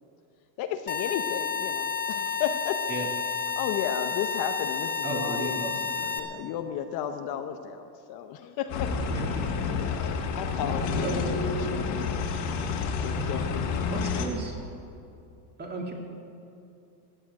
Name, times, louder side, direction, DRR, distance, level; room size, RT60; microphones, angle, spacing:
voice 1, 0.6-2.9 3.6-5.7 6.2-8.9 9.3-9.4 9.7-12.2 12.7-14.3, left 9 dB, 45° left, 7 dB, 0.8 m, -34 dB
sound 1, 0.9-6.2, left 6 dB, 20° left, 0.9 m, -30 dB
voice 2, 5.0-6.1 9.1-9.5 11.0-11.3 13.9-14.5 15.6-15.9, right 2 dB, 20° right, 1 dB, 2.3 m, -35 dB
sound 2, 8.7-14.3, left 4 dB, 70° left, 2.3 m, -29 dB
15.0 x 7.8 x 9.6 m, 2.6 s
supercardioid pair, 135°, 50 cm